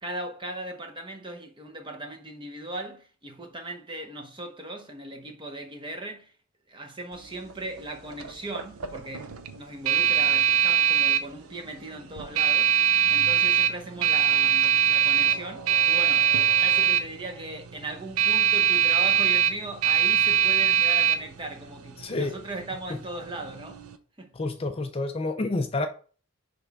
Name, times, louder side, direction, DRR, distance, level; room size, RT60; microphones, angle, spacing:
voice 1, 0.0-6.3 6.7-23.8 24.2-24.3, right 2 dB, 20° right, 0.8 m, -38 dB
sound 1, 7.1-24.0, right 9 dB, 80° right, 0.6 m, -24 dB
voice 2, 22.0-22.3 24.3-25.9, left 2 dB, 25° left, 0.4 m, -28 dB
6.2 x 3.4 x 4.6 m
head